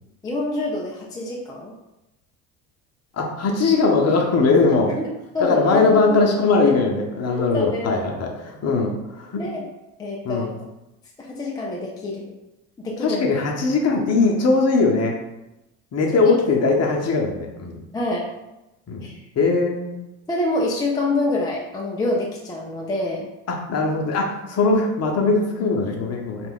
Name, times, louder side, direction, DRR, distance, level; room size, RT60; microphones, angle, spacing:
voice 1, 0.2-1.7 5.0-6.2 6.6-6.7 7.4-7.9 9.4-9.7 10.0-10.5 11.2-12.3 12.8-13.2 16.3-16.4 17.9-18.3 19.0-19.2 20.3-23.3, left 2 dB, 10° left, -3 dB, 0.4 m, -26 dB
voice 2, 3.1-5.0 5.4-9.5 10.2-10.5 13.0-15.2 15.9-17.8 18.9-19.1 19.4-20.0 23.5-26.5, left 3 dB, 35° left, 0 dB, 0.7 m, -20 dB
2.4 x 2.3 x 3.5 m, 0.94 s
hypercardioid pair, 75°, 43 cm